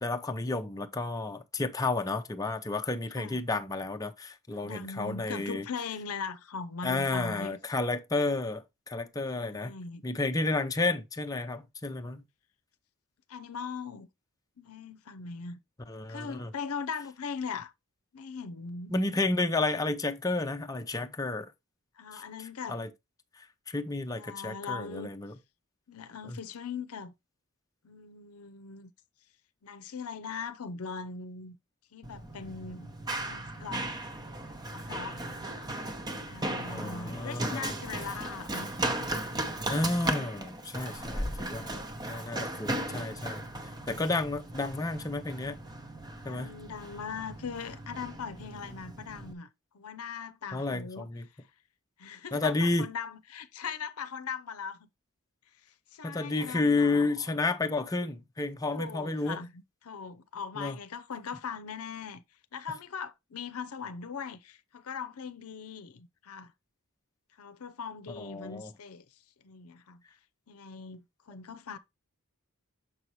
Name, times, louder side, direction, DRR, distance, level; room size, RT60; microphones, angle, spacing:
voice 1, 0.0-5.6 6.8-9.7 10.0-12.2 15.9-16.5 18.9-21.5 22.1-22.9 23.4-25.3 26.2-26.4 36.7-37.8 39.7-43.4 43.9-45.6 46.2-46.5 50.5-51.3 52.3-52.9 56.0-59.4 60.5-60.8 62.7-62.8 68.1-68.7, left 2 dB, 15° left, 0.6 m, -31 dB
voice 2, 4.6-7.6 9.4-10.0 13.3-14.1 14.6-15.6 16.1-17.7 18.1-18.9 22.0-22.8 24.1-25.1 25.9-27.1 27.8-28.9 29.6-31.6 31.9-32.9 33.3-33.9 34.7-35.2 36.3-38.7 41.0-41.2 46.2-49.5 49.7-51.1 52.0-54.9 55.9-57.3 58.7-62.2 62.5-66.5 67.4-69.0 69.4-70.0 70.5-71.8, left 5 dB, 80° left, 0.6 m, -40 dB
Run, 32.0-49.3, right 1 dB, 20° right, 0.8 m, -37 dB
6.8 x 5.5 x 3.0 m
head